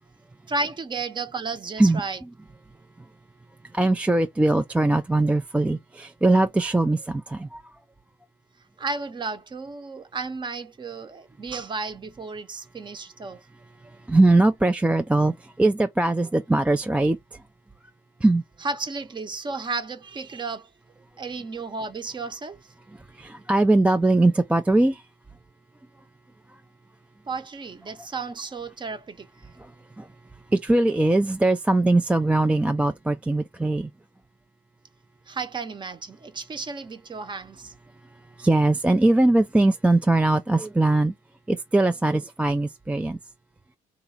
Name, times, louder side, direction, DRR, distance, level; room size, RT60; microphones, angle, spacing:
voice 1, 0.5-2.2 8.8-13.4 18.6-20.7 21.2-22.6 27.3-29.3 35.3-37.7, right 3 dB, 25° right, 0.8 m, -33 dB
voice 2, 3.7-7.6 13.8-17.4 18.2-18.4 23.0-25.0 26.5-26.6 29.6-29.7 30.0-30.1 30.5-33.9 38.4-41.1 41.5-43.2, right 2 dB, 5° right, 0.3 m, -21 dB
3.9 x 2.8 x 3.5 m
cardioid pair, 110°, 17 cm